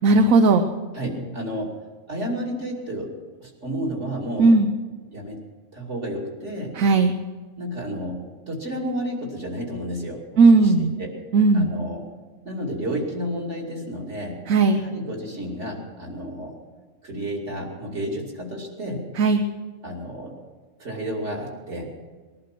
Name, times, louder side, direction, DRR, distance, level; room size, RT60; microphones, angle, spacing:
voice 1, 0.0-0.7 4.4-4.7 6.7-7.1 10.4-10.9 11.3-11.7 14.5-14.8 19.1-19.4, right 3 dB, 80° right, 6 dB, 1.2 m, -16 dB
voice 2, 0.9-1.8 2.1-3.1 3.4-4.5 5.1-5.4 5.7-6.8 7.6-10.2 10.6-11.1 11.5-12.0 12.4-14.4 14.7-16.6 17.0-19.1 19.8-20.3 20.8-21.9, equal, 55° right, -2 dB, 3.1 m, -31 dB
20.0 x 11.5 x 6.0 m, 1.4 s
omnidirectional pair, 1.4 m